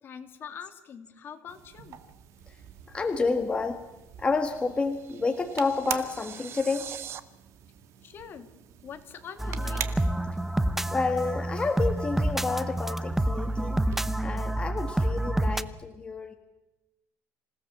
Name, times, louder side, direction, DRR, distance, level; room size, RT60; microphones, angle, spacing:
voice 1, 0.0-2.0 8.0-8.5 8.8-9.9, left 7 dB, 45° left, 7 dB, 2.7 m, -44 dB
sound 1, 1.5-14.2, right 10 dB, 65° right, 2.2 m, -44 dB
voice 2, 2.9-3.8 4.2-6.9 10.9-13.8 14.2-16.3, left 4 dB, 20° left, 5 dB, 1.8 m, -29 dB
sound 2, 4.5-7.2, right 9 dB, 50° right, 1.4 m, -43 dB
sound 3, 9.4-15.6, right 1 dB, 5° right, 0.8 m, -28 dB
27.5 x 17.5 x 7.3 m, 0.97 s
cardioid pair, 135°, 5 cm